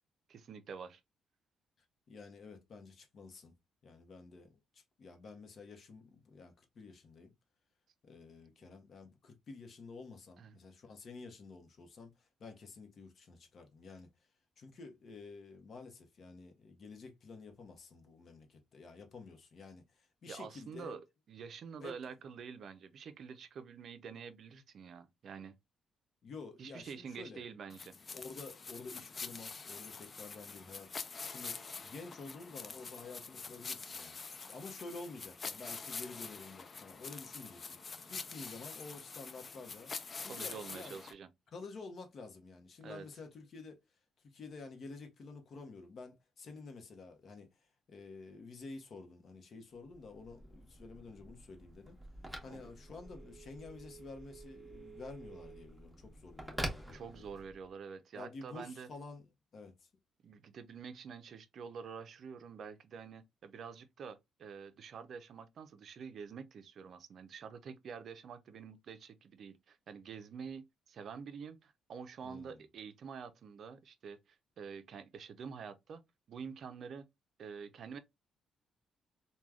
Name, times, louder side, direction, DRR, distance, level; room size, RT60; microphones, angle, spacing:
voice 1, 0.3-1.0 8.6-8.7 10.4-10.6 20.3-25.6 26.6-28.0 40.2-41.3 42.8-43.1 52.5-52.6 56.9-58.9 60.2-76.0 76.3-77.1 77.4-78.0, right 6 dB, 60° right, 0.4 m, -47 dB
voice 2, 2.1-3.5 3.8-7.3 8.0-14.1 14.6-21.0 21.8-21.9 26.2-27.4 28.1-34.2 34.5-39.9 40.2-41.0 41.5-43.8 44.2-52.0 52.4-57.2 58.1-59.2 59.5-59.9 72.2-72.6, left 3 dB, 55° left, 0.7 m, -50 dB
sound 1, 27.7-41.1, left 4 dB, 35° left, 0.3 m, -46 dB
Telephone, 49.8-57.7, right 1 dB, ahead, 0.9 m, -47 dB
3.3 x 2.2 x 2.3 m
cardioid pair, 90°, 0 cm